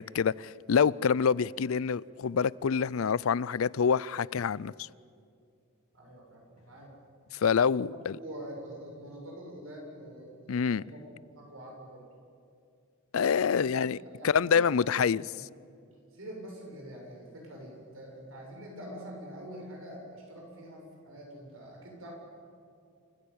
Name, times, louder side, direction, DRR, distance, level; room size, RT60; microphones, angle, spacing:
voice 1, 0.0-4.9 7.3-8.1 10.5-10.8 13.1-14.0 14.2-15.3, left 6 dB, 75° left, 0.4 m, -26 dB
voice 2, 5.9-6.9 7.8-12.0 13.5-14.8 15.3-15.4 16.1-22.1, right 1 dB, 75° right, 7.4 m, -45 dB
29.0 x 15.0 x 8.7 m
head